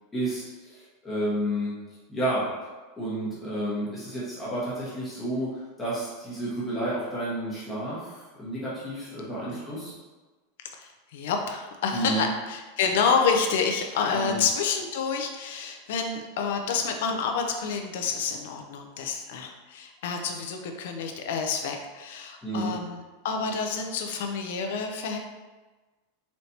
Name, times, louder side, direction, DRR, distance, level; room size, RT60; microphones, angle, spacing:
voice 1, 0.1-1.7 2.1-2.5 3.0-9.9 11.9-12.3 14.1-14.4 22.4-22.7, right 1 dB, 10° left, -9 dB, 1.4 m, -31 dB
voice 2, 9.5-9.9 10.8-25.2, left 5 dB, 70° left, 4 dB, 0.5 m, -28 dB
4.1 x 3.2 x 2.8 m, 1.2 s
supercardioid pair, 165°, 0 cm